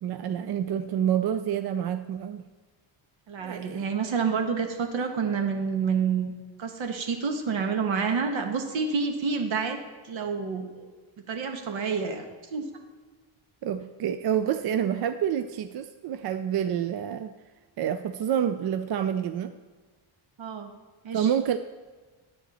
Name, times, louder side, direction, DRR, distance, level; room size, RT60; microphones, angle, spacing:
voice 1, 0.0-2.4 3.4-3.9 13.6-17.3 17.8-19.5 21.1-21.6, right 9 dB, 55° right, 10 dB, 0.5 m, -28 dB
voice 2, 3.3-6.3 6.6-9.8 10.0-10.9 11.3-12.3 12.5-12.6 20.4-20.7 21.0-21.3, right 5 dB, 70° right, 5 dB, 1.4 m, -28 dB
10.0 x 8.5 x 4.2 m, 1.4 s
cardioid pair, 120°, 48 cm